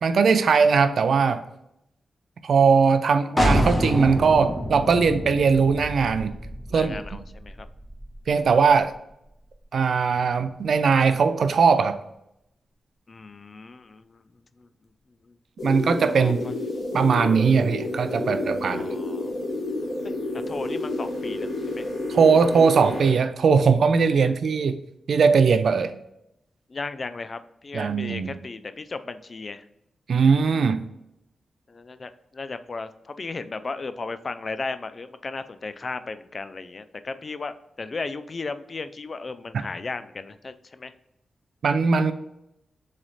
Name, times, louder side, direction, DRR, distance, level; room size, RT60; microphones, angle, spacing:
voice 1, 0.0-1.4 2.4-6.3 6.7-7.0 8.3-8.9 9.7-12.0 15.6-16.4 16.9-18.8 22.1-24.8 25.1-25.9 27.7-28.4 30.1-30.8 41.6-42.1, right 5 dB, 70° right, 10 dB, 0.4 m, -20 dB
sound 1, 3.4-8.9, equal, 15° left, 1.0 m, -27 dB
voice 2, 6.7-7.7 13.1-14.2 14.6-14.7 15.2-15.4 16.2-16.5 18.7-19.3 20.0-21.9 26.7-29.6 31.7-40.9, left 3 dB, 45° left, 12 dB, 0.3 m, -35 dB
sound 2, 15.6-23.1, left 2 dB, 65° left, 1.1 m, -30 dB
3.9 x 3.2 x 4.0 m, 0.82 s
cardioid pair, 75°, 0 cm